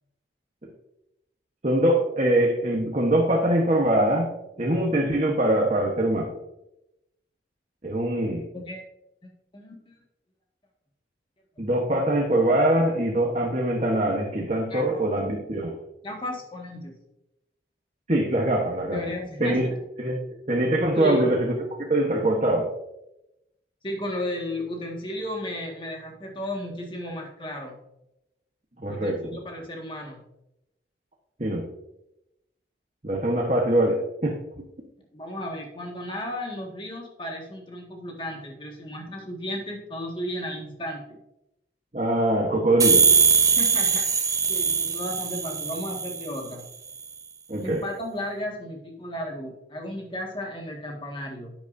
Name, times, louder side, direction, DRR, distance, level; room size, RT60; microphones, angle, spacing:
voice 1, 1.6-4.3 4.6-6.3 7.8-8.5 11.6-15.7 18.1-19.0 19.4-19.7 20.0-20.2 20.5-21.5 21.9-22.7 28.8-29.2 31.4-31.7 33.0-34.4 41.9-43.1 47.5-47.8, right 1 dB, 40° right, -1 dB, 1.2 m, -23 dB
voice 2, 9.5-9.9 11.6-11.7 14.7-15.0 16.0-16.9 18.9-19.8 20.9-21.3 23.8-27.8 28.9-30.2 35.1-41.2 43.5-44.2 44.5-46.6 47.6-51.5, left 1 dB, 25° left, 0 dB, 1.8 m, -34 dB
sound 1, 42.8-46.4, right 6 dB, 20° right, 0.7 m, -21 dB
10.5 x 9.3 x 2.7 m, 0.87 s
head